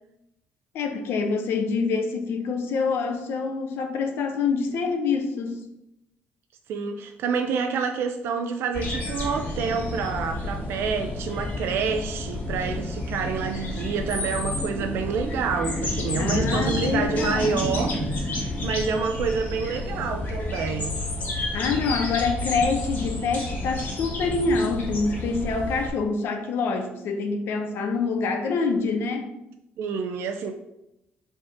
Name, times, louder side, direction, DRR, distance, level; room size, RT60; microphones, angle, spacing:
voice 1, 0.7-5.7 16.2-17.7 21.3-29.3, left 4 dB, 70° left, 5 dB, 0.9 m, -26 dB
voice 2, 6.7-18.0 18.3-21.0 29.8-30.5, right 5 dB, 75° right, 5 dB, 0.5 m, -28 dB
sound 1, 8.7-25.9, left 1 dB, 40° left, 2.2 m, -30 dB
5.3 x 3.7 x 5.7 m, 0.89 s
cardioid pair, 145°, 4 cm